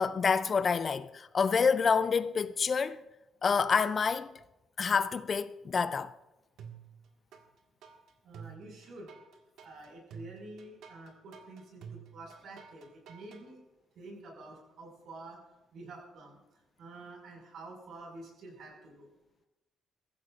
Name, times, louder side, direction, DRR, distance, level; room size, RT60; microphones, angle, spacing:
voice 1, 0.0-3.0 3.4-4.3 4.8-6.1, left 5 dB, 35° left, 0.4 m, -28 dB
sound 1, 6.6-7.4 7.8-13.4, right 7 dB, 80° right, 1.7 m, -49 dB
voice 2, 8.2-9.1 9.6-13.6 14.0-15.4 15.7-16.4 16.8-19.1, right 2 dB, 60° right, 5.5 m, -48 dB
23.0 x 15.0 x 2.5 m
cardioid pair, 160°, 0 cm